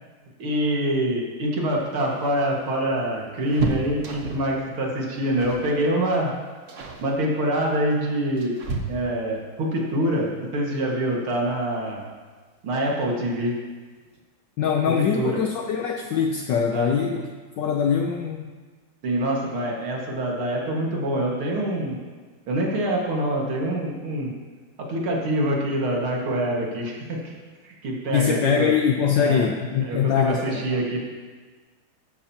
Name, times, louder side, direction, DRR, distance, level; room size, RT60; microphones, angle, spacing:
voice 1, 0.4-6.3 7.0-8.5 8.9-12.1 12.6-13.5 15.0-15.4 16.7-16.9 19.0-22.0 22.5-24.3 24.8-27.3 27.6-28.7 29.2-29.5 29.8-31.0, right 1 dB, 80° right, -2 dB, 2.7 m, -25 dB
sound 1, 1.9-4.6 5.4-5.7 6.0-6.3 6.7-7.1 7.9-9.4 11.1-11.2 11.6-11.7 12.9-13.3 13.6-13.7 14.0-14.2, right 3 dB, 45° right, 1.2 m, -33 dB
voice 2, 14.6-17.3 17.6-18.5 28.1-30.6, left 7 dB, 65° left, 3 dB, 1.3 m, -23 dB
15.0 x 12.5 x 2.9 m, 1.4 s
omnidirectional pair, 2.3 m